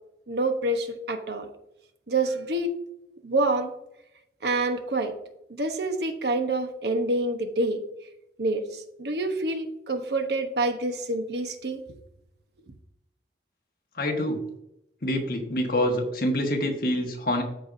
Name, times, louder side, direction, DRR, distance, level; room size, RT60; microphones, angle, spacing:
voice 1, 0.3-1.5 2.1-2.7 3.2-3.7 4.4-5.1 5.5-7.8 8.4-11.8, right 2 dB, 70° right, 6 dB, 1.0 m, -27 dB
voice 2, 14.0-14.4 15.0-17.4, left 1 dB, 55° left, 2 dB, 1.5 m, -26 dB
13.5 x 4.6 x 2.7 m, 0.82 s
head